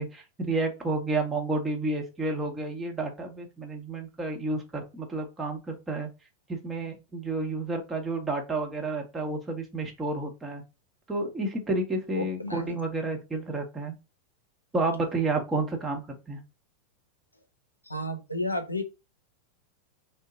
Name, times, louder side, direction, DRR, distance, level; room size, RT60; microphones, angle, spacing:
voice 1, 0.0-6.1 6.5-10.6 11.1-13.9 14.7-16.4, right 2 dB, 15° right, 1 dB, 0.9 m, -30 dB
voice 2, 12.1-12.7 17.8-18.8, left 1 dB, 85° left, 6 dB, 0.6 m, -32 dB
3.6 x 2.1 x 3.8 m, 0.28 s
figure-of-eight pair, 90°, 0 cm